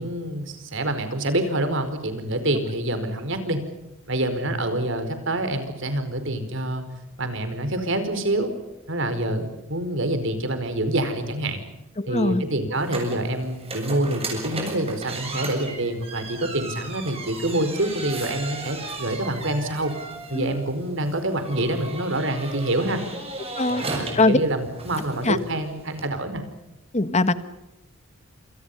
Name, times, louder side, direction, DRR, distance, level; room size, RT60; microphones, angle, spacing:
voice 1, 0.0-3.6 4.1-6.8 7.2-8.5 8.9-11.6 12.1-19.9 20.3-23.0 23.7-26.4, right 1 dB, 65° right, 9 dB, 4.8 m, -26 dB
voice 2, 12.0-12.5 20.3-20.6 23.6-23.8 24.1-24.4 25.2-25.4 26.9-27.3, left 2 dB, 35° left, 12 dB, 1.6 m, -21 dB
sound 1, 12.7-26.1, right 3 dB, 30° right, 7.5 m, -36 dB
28.0 x 28.0 x 5.6 m, 0.98 s
head